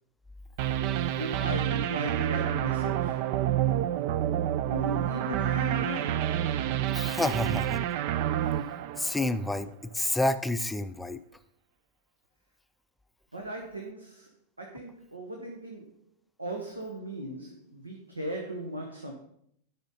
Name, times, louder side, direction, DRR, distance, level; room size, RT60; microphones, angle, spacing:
sound 1, 0.6-9.6, right 11 dB, 45° right, 0.5 m, -28 dB
voice 1, 1.2-3.2 4.6-6.3 13.3-14.3 14.6-15.9 16.4-19.1, right 1 dB, 80° right, 1 dB, 1.2 m, -37 dB
voice 2, 6.9-7.8 9.0-11.2, left 1 dB, 5° left, 11 dB, 0.5 m, -29 dB
11.5 x 5.6 x 4.1 m, 0.70 s
figure-of-eight pair, 90°, 0 cm